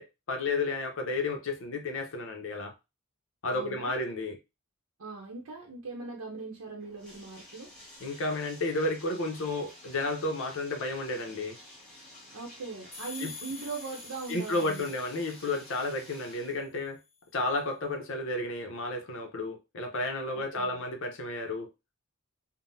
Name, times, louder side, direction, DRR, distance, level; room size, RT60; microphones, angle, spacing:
voice 1, 0.0-2.7 3.4-4.4 8.0-11.6 13.2-13.3 14.3-17.0 17.3-21.7, left 2 dB, 60° left, 0.7 m, -32 dB
voice 2, 3.5-4.0 5.0-7.7 12.3-14.9 20.3-20.8, right 4 dB, 80° right, 0.7 m, -40 dB
Bathtub (filling or washing), 6.8-16.6, left 1 dB, 5° left, 1.5 m, -51 dB
sound 1, 12.9-16.5, left 5 dB, 30° left, 1.2 m, -47 dB
3.7 x 2.1 x 2.6 m
head